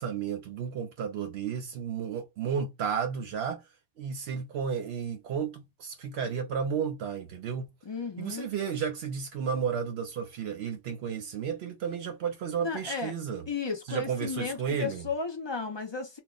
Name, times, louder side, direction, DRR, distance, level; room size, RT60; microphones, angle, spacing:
voice 1, 0.0-3.6 4.0-7.6 8.2-13.5 13.9-15.1, right 7 dB, 75° right, 0.8 m, -33 dB
voice 2, 7.8-8.5 12.6-13.1 13.5-16.2, left 5 dB, 35° left, 0.4 m, -34 dB
2.2 x 2.0 x 3.7 m
omnidirectional pair, 1.1 m